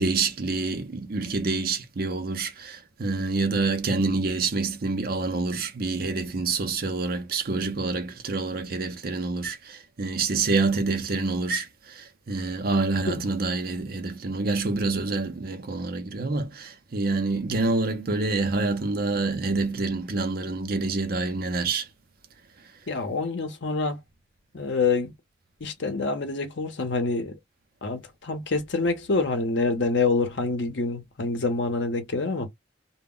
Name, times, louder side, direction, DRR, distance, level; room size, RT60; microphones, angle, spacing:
voice 1, 0.0-21.9, right 3 dB, 50° right, 0.6 m, -27 dB
voice 2, 22.9-24.0 24.5-25.1 25.6-27.3 27.8-32.5, left 3 dB, 70° left, 0.8 m, -26 dB
2.1 x 2.1 x 3.6 m
head